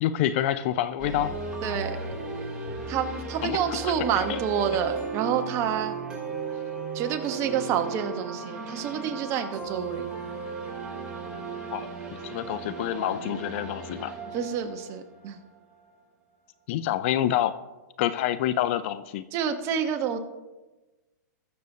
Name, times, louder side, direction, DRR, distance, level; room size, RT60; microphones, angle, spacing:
voice 1, 0.0-1.4 3.4-3.9 4.3-4.4 11.7-14.1 16.7-17.5 18.0-19.2, left 12 dB, 45° left, 14 dB, 0.4 m, -27 dB
sound 1, 1.0-15.8, right 4 dB, 10° right, 2.9 m, -35 dB
voice 2, 1.6-2.0 2.9-6.0 6.9-10.1 14.3-15.4 19.3-20.2, right 8 dB, 30° right, 7 dB, 1.0 m, -28 dB
20.0 x 6.7 x 2.7 m, 1.2 s
hypercardioid pair, 145°, 10 cm